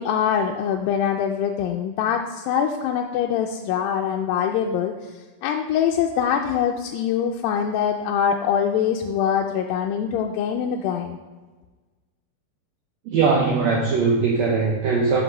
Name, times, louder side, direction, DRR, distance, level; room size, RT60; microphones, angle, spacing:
voice 1, 0.0-5.1 5.4-11.2, left 8 dB, 80° left, 1 dB, 2.2 m, -23 dB
voice 2, 13.1-15.2, right 4 dB, 75° right, -2 dB, 1.6 m, -20 dB
5.9 x 5.4 x 6.2 m, 1.3 s
omnidirectional pair, 4.2 m